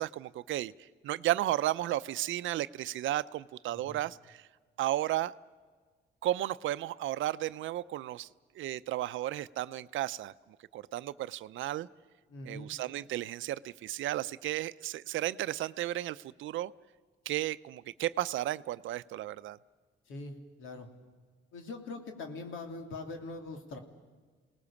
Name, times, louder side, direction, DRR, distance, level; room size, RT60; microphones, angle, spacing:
voice 1, 0.0-4.5 4.8-5.3 6.2-8.3 8.5-10.3 10.7-11.9 12.5-16.7 17.3-19.6, right 14 dB, 80° right, 15 dB, 0.6 m, -33 dB
voice 2, 12.3-12.7 20.1-20.9 21.5-23.8, left 3 dB, 85° left, 4 dB, 2.8 m, -42 dB
29.0 x 19.0 x 7.2 m, 1.5 s
cardioid pair, 90°, 20 cm